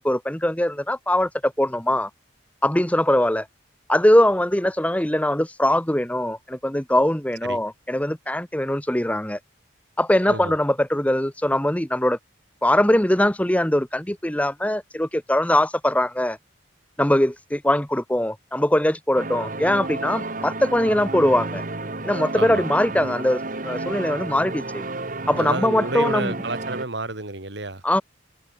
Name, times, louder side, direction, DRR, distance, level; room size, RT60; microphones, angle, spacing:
voice 1, 0.0-2.1 2.6-3.5 3.9-9.4 10.0-12.2 12.6-16.4 17.0-21.6 22.0-24.8 25.3-26.3 27.8-28.0, left 1 dB, 5° left, 1.1 m, -21 dB
sound 1, 19.1-26.8, right 2 dB, 45° right, 2.0 m, -31 dB
voice 2, 22.3-22.7 25.4-27.8, right 2 dB, 60° right, 2.7 m, -30 dB
head